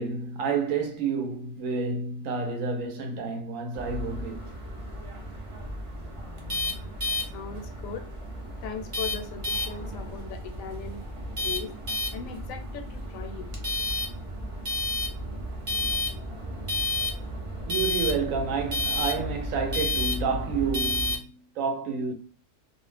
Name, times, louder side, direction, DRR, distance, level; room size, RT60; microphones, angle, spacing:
voice 1, 0.0-4.5 17.7-22.1, right 5 dB, 75° right, 1.0 m, -29 dB
sound 1, 3.7-21.2, left 2 dB, 50° right, 0.3 m, -32 dB
voice 2, 7.3-8.0 8.6-11.0 11.4-11.7 12.1-13.5, left 5 dB, 80° left, 1.0 m, -38 dB
2.4 x 2.1 x 3.2 m
omnidirectional pair, 1.4 m